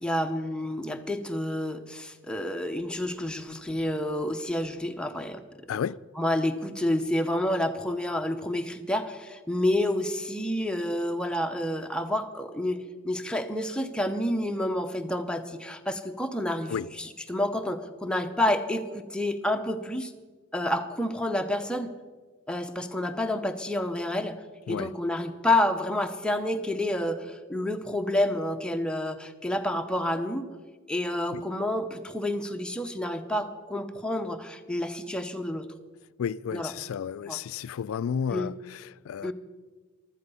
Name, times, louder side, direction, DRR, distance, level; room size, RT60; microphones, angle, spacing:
voice 1, 0.0-5.4 6.2-20.1 20.5-21.9 22.5-24.4 24.7-30.4 30.9-35.6 36.5-36.7 37.3-37.4 38.3-38.5 39.2-39.3, left 1 dB, 5° left, 0.8 m, -29 dB
voice 2, 36.2-39.3, left 7 dB, 85° left, 0.3 m, -32 dB
15.0 x 12.0 x 5.5 m
head